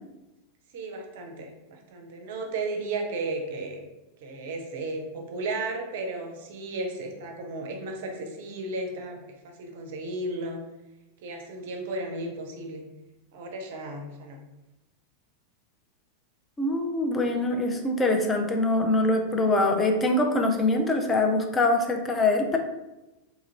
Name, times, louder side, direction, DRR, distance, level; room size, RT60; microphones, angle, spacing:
voice 1, 0.7-3.8 4.2-10.6 11.2-12.8 13.3-14.4, right 2 dB, 50° right, 3 dB, 0.5 m, -34 dB
voice 2, 16.6-22.6, left 2 dB, 15° left, 3 dB, 0.4 m, -24 dB
2.9 x 2.5 x 2.9 m, 1.0 s
figure-of-eight pair, 90°, 0 cm